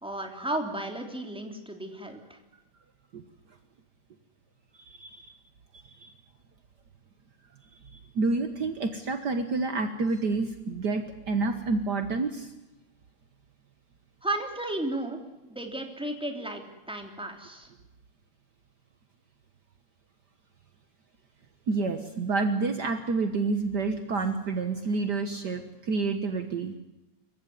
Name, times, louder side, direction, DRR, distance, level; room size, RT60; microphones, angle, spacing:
voice 1, 0.0-2.4 14.2-17.7, right 1 dB, ahead, 3 dB, 2.7 m, -34 dB
voice 2, 4.9-5.3 6.0-6.1 7.9-12.5 21.7-26.7, right 3 dB, 70° right, 7 dB, 0.9 m, -29 dB
26.0 x 15.5 x 9.5 m, 1.0 s
omnidirectional pair, 3.9 m